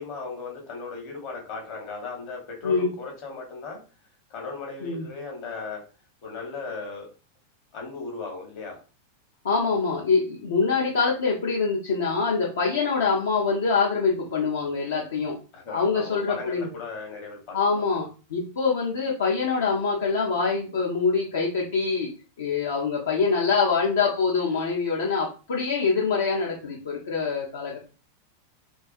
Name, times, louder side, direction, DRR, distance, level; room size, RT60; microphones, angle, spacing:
voice 1, 0.0-3.8 4.3-5.8 6.2-7.1 7.7-8.8 15.5-17.9, left 4 dB, 40° left, 0 dB, 0.9 m, -37 dB
voice 2, 9.4-15.3 15.7-16.7 17.5-22.1 22.4-27.8, left 4 dB, 65° left, -3 dB, 0.5 m, -24 dB
2.3 x 2.3 x 2.5 m, 0.34 s
figure-of-eight pair, 90°, 0 cm